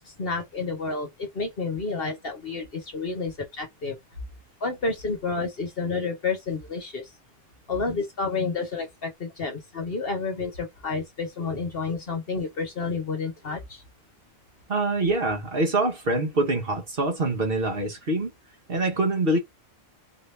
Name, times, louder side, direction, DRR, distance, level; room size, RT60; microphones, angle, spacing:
voice 1, 0.0-4.0 4.6-7.1 7.7-13.8, left 4 dB, 45° left, 1.1 m, -30 dB
voice 2, 14.7-18.3 18.7-19.4, right 2 dB, 45° right, 1.3 m, -25 dB
4.1 x 2.9 x 3.3 m
omnidirectional pair, 1.4 m